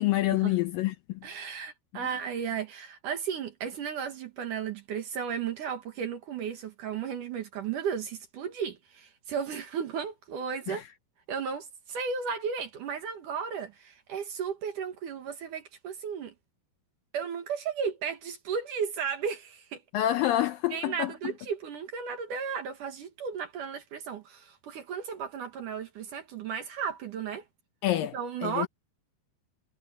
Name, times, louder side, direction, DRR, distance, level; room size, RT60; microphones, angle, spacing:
voice 1, 0.0-1.2 10.7-10.8 19.9-21.3 27.8-28.2 28.4-28.7, left 14 dB, 75° left, 2.3 m, -27 dB
voice 2, 1.2-10.8 11.3-16.3 17.1-19.8 20.7-27.4 28.1-28.7, right 7 dB, 60° right, 2.9 m, -34 dB
omnidirectional pair, 4.4 m